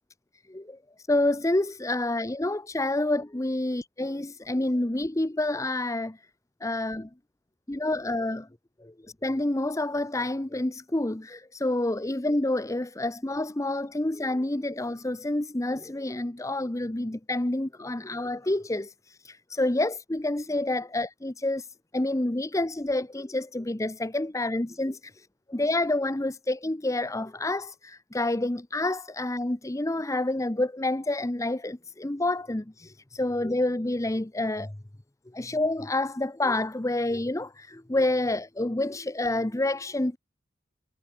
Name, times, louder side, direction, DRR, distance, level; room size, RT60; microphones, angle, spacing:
voice 1, 1.1-6.2 6.6-7.1 7.7-8.5 8.8-8.9 9.2-21.7 21.9-34.8 35.4-40.2, left 2 dB, 15° left, 0.7 m, -28 dB
head